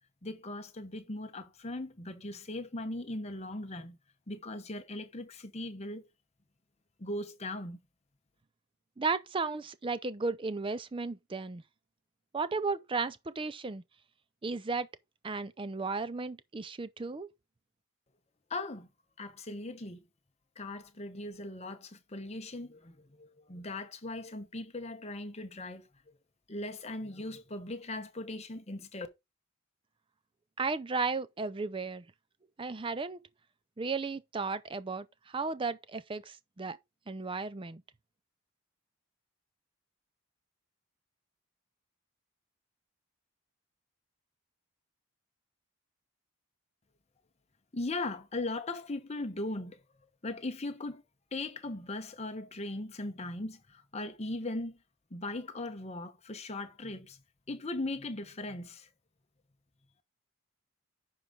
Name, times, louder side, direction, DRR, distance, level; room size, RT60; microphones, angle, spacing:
voice 1, 0.2-4.0 4.3-6.0 7.0-7.8 18.5-18.9 19.2-20.0 20.6-25.9 26.5-29.1 47.7-49.8 50.2-51.0 51.3-54.8 55.1-57.2 57.5-58.9, left 2 dB, 30° left, 0.9 m, -39 dB
voice 2, 9.0-11.6 12.3-13.8 14.4-14.9 15.2-17.3 30.6-32.0 32.6-33.2 33.8-36.8 37.1-37.8, right 4 dB, 25° right, 0.4 m, -34 dB
10.5 x 4.7 x 3.7 m
head